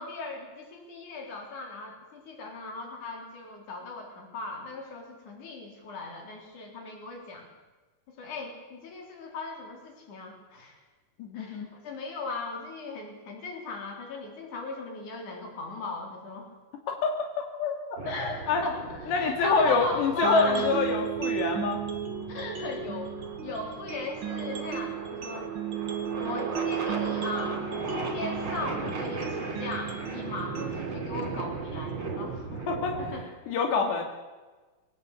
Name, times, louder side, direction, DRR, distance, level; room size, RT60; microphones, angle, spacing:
voice 1, 0.0-7.5 8.1-10.8 11.3-16.5 18.1-20.7 22.3-23.1 23.4-25.5 26.2-27.6 27.9-32.5 33.0-33.3, left 2 dB, 50° left, 2 dB, 5.2 m, -38 dB
voice 2, 11.2-11.7 16.9-18.0 18.5-18.6 19.1-21.8 32.7-33.0 33.5-34.0, left 4 dB, 85° left, 3 dB, 4.6 m, -26 dB
sound 1, 18.0-33.2, right 3 dB, 30° right, 3.7 m, -37 dB
sound 2, 20.2-32.2, right 9 dB, 85° right, 1.1 m, -35 dB
23.5 x 18.0 x 8.5 m, 1.2 s
omnidirectional pair, 4.8 m